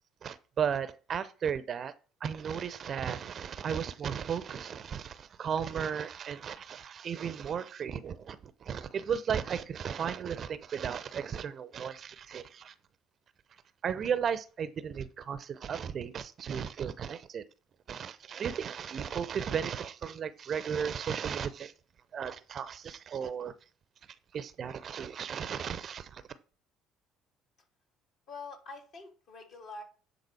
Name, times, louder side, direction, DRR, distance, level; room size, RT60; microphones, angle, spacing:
voice 1, 0.2-1.9 2.2-12.7 13.8-17.4 17.9-21.7 22.1-23.5 24.3-26.2, right 7 dB, 45° right, 0.6 m, -35 dB
voice 2, 28.3-29.8, left 3 dB, 60° left, 3.0 m, -45 dB
9.9 x 3.9 x 4.7 m
figure-of-eight pair, 55°, 0 cm